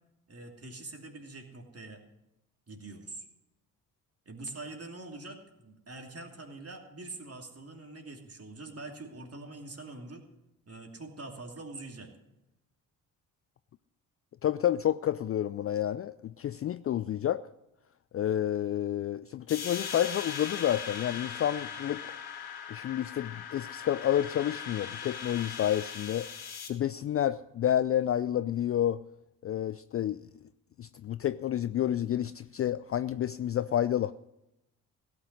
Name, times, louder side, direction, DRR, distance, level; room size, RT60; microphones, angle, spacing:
voice 1, 0.3-2.0 2.7-3.3 4.3-10.3 10.7-12.1, right 2 dB, 35° right, 3 dB, 2.9 m, -44 dB
voice 2, 14.4-17.4 18.1-22.2 22.7-26.3 26.7-29.0 29.4-30.3 30.8-34.1, left 11 dB, 35° left, 15 dB, 0.4 m, -29 dB
sound 1, 19.5-26.7, left 7 dB, 60° left, 2.2 m, -40 dB
16.5 x 6.5 x 9.7 m, 0.89 s
hypercardioid pair, 45°, 42 cm